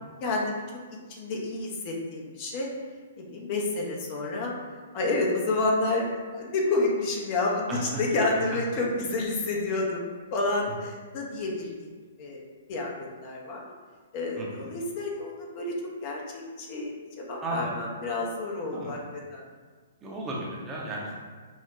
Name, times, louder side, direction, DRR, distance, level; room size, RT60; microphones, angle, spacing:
voice 1, 0.2-0.6 1.1-2.7 3.2-4.5 4.9-11.9 12.2-12.4 12.7-13.7 14.1-15.7 16.0-19.0 19.3-19.4, left 2 dB, 40° left, -2 dB, 0.8 m, -29 dB
voice 2, 7.7-8.0 14.4-14.7 17.4-17.7 18.7-19.0 20.0-21.2, right 1 dB, 20° right, -4 dB, 0.8 m, -34 dB
5.6 x 2.3 x 2.9 m, 1.5 s
figure-of-eight pair, 120°, 0 cm